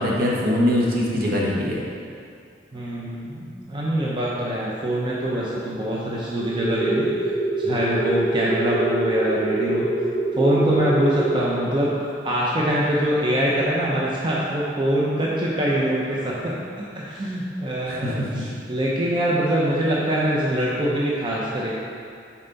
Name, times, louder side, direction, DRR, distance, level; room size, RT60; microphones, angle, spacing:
voice 1, 0.0-1.8 17.9-18.4, left 1 dB, 60° right, -4 dB, 1.2 m, -22 dB
voice 2, 2.7-7.1 7.6-10.1 10.3-11.9 12.2-16.5 16.9-21.7, right 1 dB, 30° right, -6 dB, 0.7 m, -23 dB
sound 1, 6.4-11.4, right 2 dB, 10° left, 0.8 m, -25 dB
7.1 x 4.4 x 4.0 m, 2.4 s
head